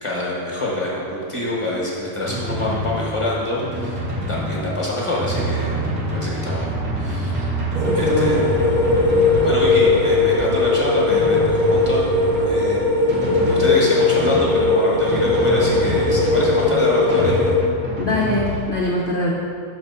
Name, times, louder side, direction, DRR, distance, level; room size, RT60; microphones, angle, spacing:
voice 1, 0.0-5.7 6.1-7.5 7.9-8.6 9.4-12.1 12.5-13.1 13.5-17.3, left 1 dB, 20° left, -5 dB, 1.0 m, -26 dB
Drum, 2.2-18.6, right 1 dB, 85° right, 1.9 m, -27 dB
sound 1, 7.7-17.6, left 3 dB, 55° right, 0.4 m, -19 dB
voice 2, 7.8-8.4 18.0-19.3, left 2 dB, 80° left, -4 dB, 0.4 m, -23 dB
6.2 x 4.1 x 5.5 m, 2.4 s
omnidirectional pair, 1.9 m